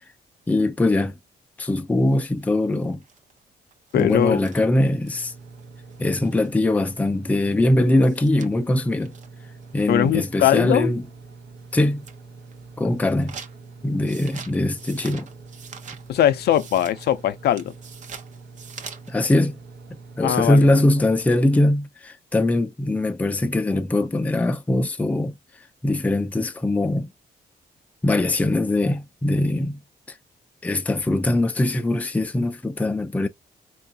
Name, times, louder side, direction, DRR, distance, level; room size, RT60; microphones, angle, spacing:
voice 1, 0.5-1.2 1.6-3.0 3.9-5.3 6.0-9.1 9.7-11.0 11.7-12.0 12.8-13.4 13.8-15.3 19.1-19.6 20.2-25.3 25.8-27.1 28.0-29.8 30.1-30.2 30.6-33.3, left 1 dB, 10° left, 0.4 m, -21 dB
sound 1, 2.1-6.6 7.0-7.1 7.3-7.4 7.7-7.8 8.0-10.4 10.9-11.1 11.6-12.2 12.5-19.1, right 6 dB, 45° right, 0.7 m, -44 dB
voice 2, 3.9-4.4 9.9-10.9 16.1-17.7 20.2-20.9, left 11 dB, 70° left, 0.4 m, -21 dB
sound 2, 5.1-21.7, right 4 dB, 80° right, 0.9 m, -44 dB
4.5 x 2.4 x 2.7 m
wide cardioid pair, 160°, 17 cm